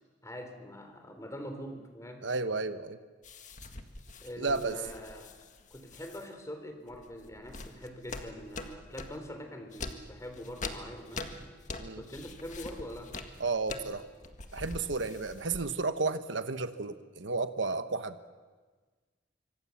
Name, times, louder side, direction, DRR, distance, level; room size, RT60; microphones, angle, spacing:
voice 1, 0.2-2.3 4.2-5.4 5.7-11.4 12.0-13.2, equal, 15° left, 6 dB, 3.6 m, -43 dB
voice 2, 2.2-3.0 4.4-4.8 11.8-12.0 13.4-14.1 14.5-18.2, right 3 dB, 85° right, 10 dB, 1.2 m, -32 dB
sound 1, 3.2-6.3 6.9-9.2 9.7-15.9, left 3 dB, 40° left, 1.8 m, -44 dB
26.0 x 25.0 x 7.3 m, 1.4 s
head